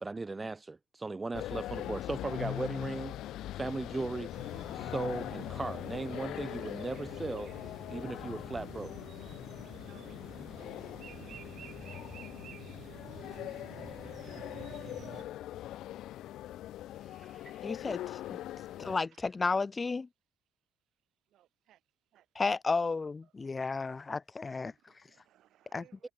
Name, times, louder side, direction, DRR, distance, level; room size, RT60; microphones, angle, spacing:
voice 1, 0.0-3.2 3.6-4.3 4.7-7.5 7.9-8.9 17.0-17.7 18.8-18.9, right 3 dB, 25° right, 1.5 m, -37 dB
sound 1, 1.3-19.0, left 13 dB, 85° left, 2.2 m, -41 dB
sound 2, 4.3-15.2, right 9 dB, 65° right, 7.8 m, -50 dB
voice 2, 9.8-15.3 19.1-19.2 20.5-22.4 23.2-23.6 24.3-26.1, right 13 dB, 80° right, 7.9 m, -67 dB
voice 3, 17.6-18.4 18.8-20.1 22.4-24.7 25.7-25.8, left 4 dB, 30° left, 0.9 m, -32 dB
cardioid pair, 90°, 0 cm